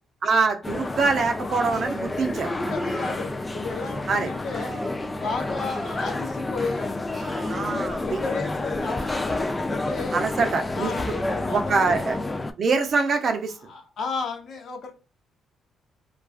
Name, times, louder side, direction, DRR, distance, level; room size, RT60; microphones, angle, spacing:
voice 1, 0.2-2.7 4.1-4.3 7.5-8.2 10.1-11.1 11.5-12.2 12.6-13.5, right 4 dB, 55° right, 0.5 m, -24 dB
sound 1, 0.6-12.5, left 2 dB, 20° left, 0.3 m, -29 dB
sound 2, 1.7-2.2 2.7-3.3 4.4-5.0 5.5-6.4 7.1-7.6 9.0-9.5, right 1 dB, 15° right, 0.8 m, -40 dB
voice 2, 2.4-4.7 5.1-7.0 7.4-7.7 8.0-10.2 10.7-11.9 13.6-14.9, left 4 dB, 60° left, 0.7 m, -33 dB
2.3 x 2.3 x 2.3 m
cardioid pair, 90°, 0 cm